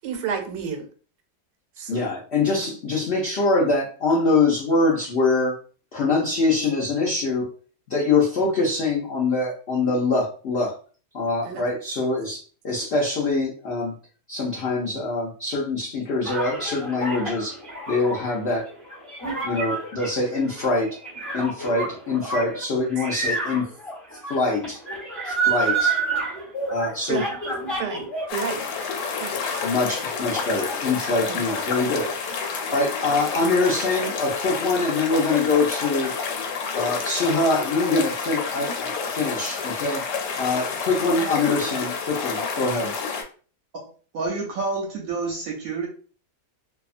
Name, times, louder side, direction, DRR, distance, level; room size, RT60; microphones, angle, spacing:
voice 1, 0.0-0.9 1.8-2.1 11.4-11.6 27.1-27.3 27.8-28.6 29.1-29.6 31.3-31.4 32.3-32.4 32.7-32.8, right 7 dB, 85° right, 4 dB, 1.2 m, -31 dB
voice 2, 1.9-5.6 5.9-7.5 7.9-10.8 11.1-13.9 14.3-17.5 17.9-18.6 19.4-20.9 21.3-23.7 24.3-24.8 25.2-26.0 26.7-27.2 29.6-32.1 32.4-36.1 36.7-40.0 40.4-42.9, left 3 dB, 60° left, -4 dB, 0.7 m, -24 dB
sound 1, 16.2-28.4 28.7-29.6, right 3 dB, ahead, 0.8 m, -29 dB
sound 2, 28.3-43.2, left 5 dB, 85° left, 1.2 m, -29 dB
voice 3, 43.7-45.9, right 3 dB, 70° right, 0 dB, 0.9 m, -29 dB
2.7 x 2.2 x 2.4 m, 0.40 s
omnidirectional pair, 1.8 m